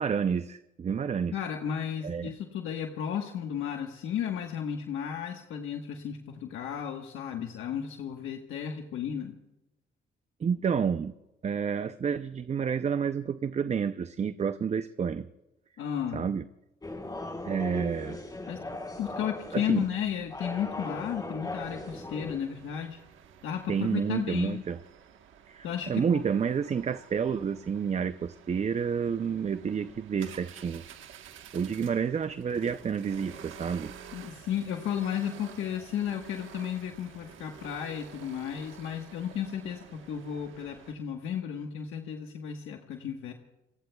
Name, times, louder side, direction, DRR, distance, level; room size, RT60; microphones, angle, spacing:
voice 1, 0.0-1.4 2.0-2.3 10.4-11.1 11.4-15.3 16.1-16.4 17.4-18.2 19.5-19.8 23.7-24.8 25.5-30.8 31.5-33.9, right 6 dB, 35° right, 11 dB, 0.6 m, -29 dB
voice 2, 1.3-9.4 15.8-16.3 18.5-18.6 19.0-23.0 23.4-24.6 25.6-26.2 34.1-43.3, left 9 dB, 85° left, 3 dB, 1.3 m, -34 dB
sound 1, 16.8-22.4, left 2 dB, 20° left, 4.4 m, -38 dB
sound 2, 21.6-40.9, right 8 dB, 80° right, 1.3 m, -51 dB
29.0 x 19.5 x 2.3 m, 0.96 s
cardioid pair, 90°, 20 cm